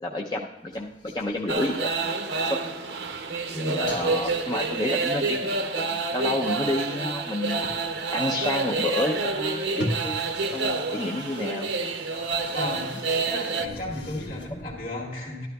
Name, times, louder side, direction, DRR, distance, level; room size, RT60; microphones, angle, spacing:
voice 1, 0.0-1.9 2.4-2.6 3.5-7.6 8.1-11.7 14.5-14.6, left 1 dB, 25° left, -1 dB, 0.5 m, -30 dB
sound 1, 0.6-2.2 2.7-2.8 3.0-3.4 3.9-5.2 7.3-7.4 7.6-8.0 9.7-14.8, left 1 dB, 80° left, 1.4 m, -40 dB
sound 2, 1.5-13.7, right 3 dB, 70° right, 0.8 m, -28 dB
voice 2, 3.5-3.9 12.5-12.9 13.3-15.5, left 1 dB, 50° left, -5 dB, 2.3 m, -34 dB
12.5 x 12.0 x 2.3 m, 1.1 s
head